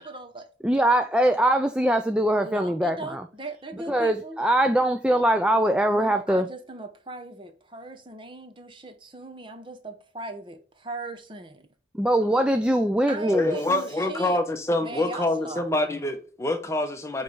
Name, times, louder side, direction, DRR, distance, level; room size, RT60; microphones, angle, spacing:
voice 1, 0.0-0.5 2.4-4.4 5.9-11.7 13.1-14.4 14.8-15.6, right 2 dB, 30° right, 0.8 m, -38 dB
voice 2, 0.6-3.2 3.9-6.5 11.9-13.6, right 1 dB, 5° right, 0.3 m, -22 dB
voice 3, 13.3-17.2, left 2 dB, 15° left, 0.8 m, -26 dB
8.9 x 3.2 x 5.2 m
head